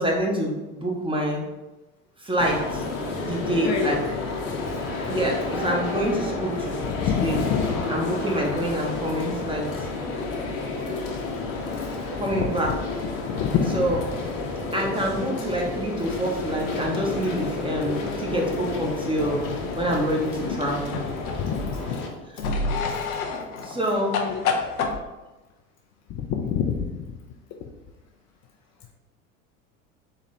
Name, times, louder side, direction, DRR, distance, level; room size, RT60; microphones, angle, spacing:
voice 1, 0.0-1.5 2.2-2.8 3.2-4.0 4.6-4.7 5.1-7.4 7.9-9.9 12.2-12.7 13.7-14.0 14.7-19.4 19.7-21.0 23.6-24.1, right 1 dB, 10° right, -2 dB, 1.2 m, -26 dB
sound 1, 2.4-22.1, left 3 dB, 60° left, 1.1 m, -31 dB
voice 2, 3.6-3.9 6.9-7.9 12.3-12.5 13.3-14.0 21.2-22.0 24.1-24.4 26.1-27.2 27.5-27.6, left 7 dB, 40° left, 3 dB, 0.6 m, -27 dB
sound 2, 19.2-21.8 22.4-25.0, left 4 dB, 80° left, 0.7 m, -30 dB
4.1 x 3.0 x 4.1 m, 1.1 s
hypercardioid pair, 70°, 42 cm